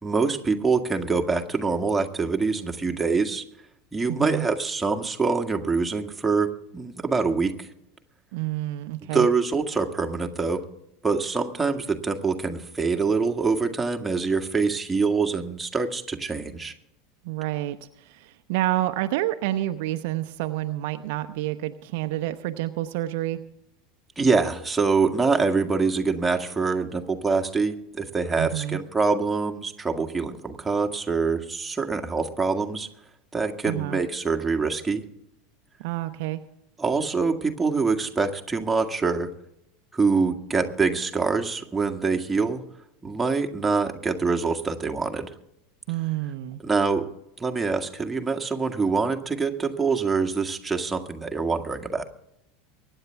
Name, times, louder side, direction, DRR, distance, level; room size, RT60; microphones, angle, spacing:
voice 1, 0.0-3.4 3.9-7.7 9.1-10.6 11.0-16.7 24.2-32.9 33.3-35.0 36.8-39.3 39.9-42.6 43.0-45.3 46.6-47.0 47.4-52.0, right 4 dB, 15° right, 3 dB, 1.8 m, -25 dB
voice 2, 4.1-4.5 8.3-9.3 17.2-23.4 28.4-28.8 33.6-34.0 35.8-36.4 45.9-46.6, right 15 dB, 65° right, 8 dB, 0.8 m, -29 dB
24.0 x 10.0 x 3.5 m, 0.80 s
hypercardioid pair, 85°, 0 cm